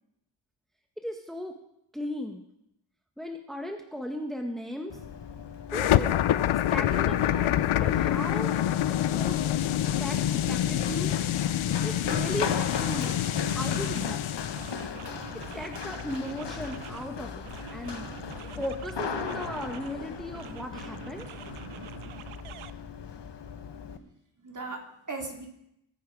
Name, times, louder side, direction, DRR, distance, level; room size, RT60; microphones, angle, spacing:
voice 1, 1.0-1.5 1.9-2.4 3.2-5.0 5.7-6.1 6.7-8.6 9.1-9.4 10.0-11.1 11.8-13.1 13.5-14.2 15.5-18.1 18.5-21.3, equal, ahead, 3 dB, 1.6 m, -36 dB
Run, 4.9-24.0, left 7 dB, 60° left, 1.3 m, -37 dB
sound 1, 5.7-14.8, left 11 dB, 90° left, 0.7 m, -26 dB
sound 2, 11.1-11.3 11.7-14.2 14.6-17.1 17.5-20.0 20.3-22.7, right 11 dB, 85° right, 0.7 m, -45 dB
voice 2, 23.8-24.1 24.4-25.5, right 3 dB, 40° right, 1 dB, 3.7 m, -39 dB
22.0 x 9.4 x 5.0 m, 0.79 s
cardioid pair, 70°, 48 cm